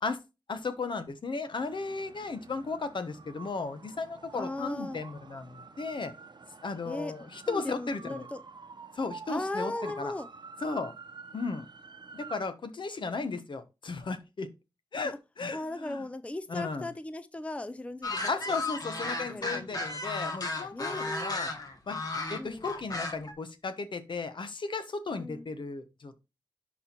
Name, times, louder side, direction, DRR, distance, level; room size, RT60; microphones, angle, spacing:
voice 1, 0.5-6.1 6.6-8.3 8.9-10.1 10.6-10.9 11.3-11.7 12.1-14.5 14.9-16.0 16.5-16.9 18.3-21.5 21.9-22.0 22.3-26.2, left 4 dB, 65° left, 1.0 m, -35 dB
sound 1, 1.6-12.4, right 5 dB, 55° right, 0.8 m, -48 dB
voice 2, 4.3-5.0 6.9-7.1 7.5-8.4 9.3-10.3 15.5-18.6 19.3-19.8 20.7-21.4 22.4-22.7 25.1-25.5, left 2 dB, 15° left, 0.5 m, -37 dB
sound 2, 18.0-23.3, left 2 dB, 45° left, 1.3 m, -34 dB
11.0 x 4.2 x 3.0 m
wide cardioid pair, 70°, 9 cm